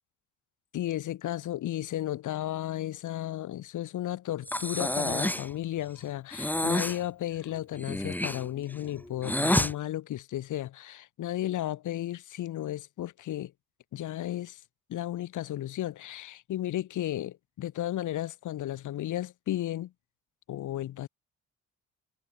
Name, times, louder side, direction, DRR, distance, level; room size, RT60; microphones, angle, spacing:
voice 1, 0.7-13.5 13.9-14.6 14.9-19.9 20.5-21.1, left 13 dB, 80° left, 6.2 m, -34 dB
Breathing, 4.5-5.5 6.3-7.0 7.7-9.7, left 1 dB, 5° left, 2.2 m, -29 dB
cardioid pair, 90°, 30 cm